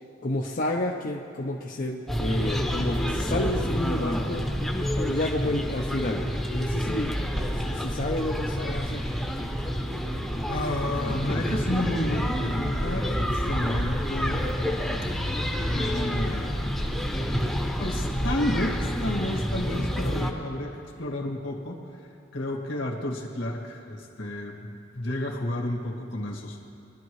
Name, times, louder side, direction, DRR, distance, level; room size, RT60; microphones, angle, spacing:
voice 1, 0.2-4.4 5.0-7.2 7.6-9.0, left 1 dB, 45° left, -1 dB, 0.7 m, -30 dB
sound 1, 2.1-20.3, equal, ahead, 0.9 m, -28 dB
voice 2, 10.5-14.5 15.6-16.6 17.0-17.2 17.8-21.9 22.3-26.6, left 1 dB, 75° left, -1 dB, 1.9 m, -31 dB
22.0 x 12.0 x 3.2 m, 2.8 s
head